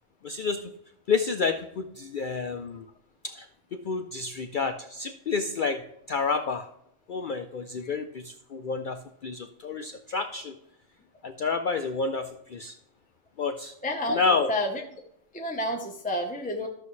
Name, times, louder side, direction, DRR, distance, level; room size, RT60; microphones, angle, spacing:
voice 1, 0.2-0.7 1.1-2.9 3.2-3.5 3.8-5.8 6.1-6.7 7.1-10.6 11.2-12.7 13.4-13.7 14.1-14.5, left 4 dB, 60° left, 7 dB, 0.5 m, -29 dB
voice 2, 13.8-14.2 14.5-14.8 15.3-16.7, left 1 dB, 10° left, 1 dB, 0.7 m, -30 dB
13.0 x 6.8 x 3.1 m, 0.75 s
omnidirectional pair, 1.3 m